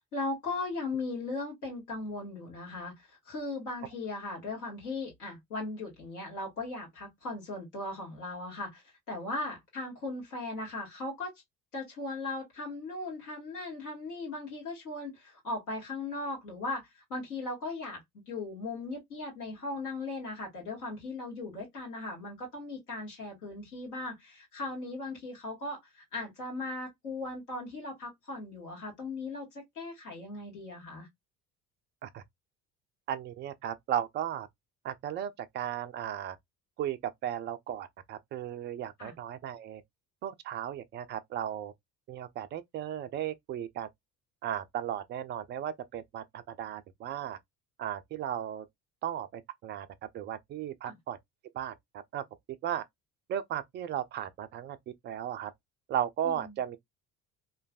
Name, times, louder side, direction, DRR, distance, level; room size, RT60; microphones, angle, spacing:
voice 1, 0.1-2.9 3.3-11.3 11.7-31.1 39.0-39.1 50.9-51.0 56.2-56.6, left 2 dB, 75° left, 1.9 m, -38 dB
voice 2, 33.1-34.5 34.8-36.4 36.8-39.8 40.2-41.7 42.1-43.9 44.4-47.4 47.8-48.7 49.0-49.9 50.1-51.2 51.5-52.2 52.6-52.8 53.3-54.8 55.0-55.5 55.9-56.8, right 10 dB, 25° right, 0.3 m, -35 dB
3.0 x 2.5 x 2.3 m
figure-of-eight pair, 55°, 47 cm